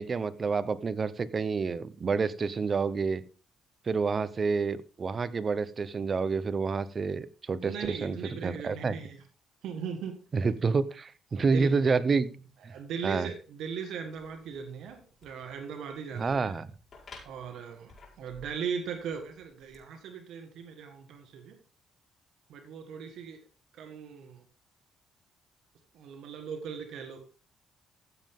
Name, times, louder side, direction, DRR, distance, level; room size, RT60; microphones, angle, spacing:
voice 1, 0.0-3.2 3.9-8.2 8.4-8.9 10.3-12.3 12.6-12.7 13.0-13.3 16.1-16.7, right 4 dB, 40° right, 15 dB, 0.8 m, -28 dB
voice 2, 7.6-9.2 9.6-10.2 11.3-11.7 12.2-12.3 12.7-16.5 17.2-17.9 18.2-21.6 22.5-23.4 23.7-24.4 25.9-27.2, right 6 dB, 80° right, 5 dB, 1.6 m, -39 dB
sound 1, 14.1-19.8, left 3 dB, 45° left, 4.7 m, -56 dB
14.5 x 7.6 x 3.7 m, 0.38 s
cardioid pair, 90°, 0 cm